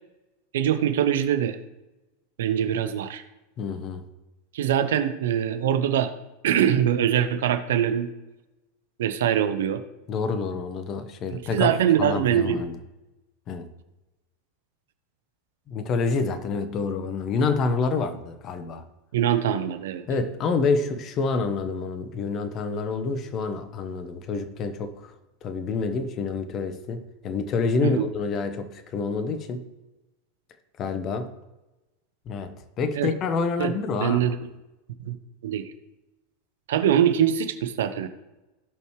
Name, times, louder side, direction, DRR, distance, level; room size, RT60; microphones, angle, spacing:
voice 1, 0.5-1.6 2.4-3.2 4.5-6.1 6.4-8.1 9.0-9.8 11.3-12.6 19.1-20.0 27.8-28.0 33.0-33.1 33.6-33.7 34.0-34.4 35.0-35.2 35.4-35.6 36.7-38.1, right 9 dB, 70° right, 10 dB, 0.8 m, -23 dB
voice 2, 3.6-4.0 10.1-11.7 12.0-12.7 13.5-13.7 15.7-18.8 20.1-25.1 25.4-29.6 30.8-31.3 32.3-34.3, left 4 dB, 40° left, 10 dB, 1.1 m, -27 dB
16.5 x 5.5 x 3.2 m, 1.0 s
hypercardioid pair, 90°, 0 cm